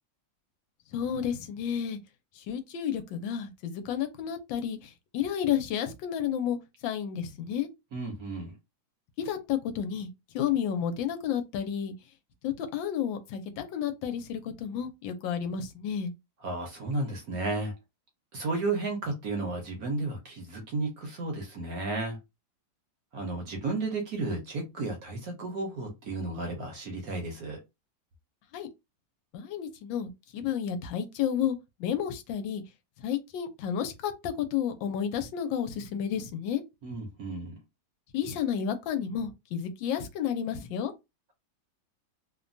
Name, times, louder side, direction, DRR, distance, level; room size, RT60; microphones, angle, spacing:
voice 1, 0.9-2.0 2.5-6.6 6.8-7.7 9.2-10.1 10.3-11.9 12.4-16.1 28.5-28.7 29.3-32.6 33.0-36.6 38.1-40.9, left 8 dB, 80° left, 1.3 m, -31 dB
voice 2, 7.9-8.5 16.4-17.7 18.3-22.2 23.1-27.6 36.8-37.5, right 2 dB, 60° right, 1.0 m, -33 dB
3.2 x 2.2 x 2.6 m
omnidirectional pair, 2.1 m